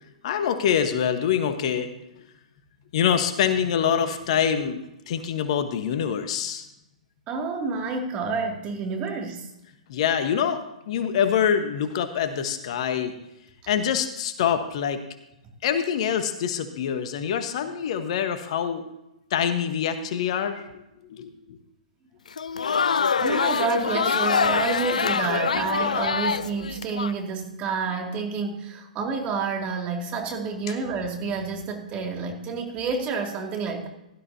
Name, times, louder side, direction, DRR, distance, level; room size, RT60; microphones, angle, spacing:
voice 1, 0.2-1.9 2.9-4.8 5.1-6.6 9.9-13.1 13.7-15.0 15.6-18.8 19.3-20.8 21.1-21.6 25.5-25.7, left 8 dB, 55° left, 9 dB, 1.2 m, -25 dB
voice 2, 7.3-9.5 23.2-33.9, right 5 dB, 30° right, 2 dB, 2.4 m, -29 dB
Crowd, 22.3-27.1, left 6 dB, 75° left, 0.4 m, -24 dB
17.0 x 12.5 x 2.8 m, 0.88 s
figure-of-eight pair, 115°, 4 cm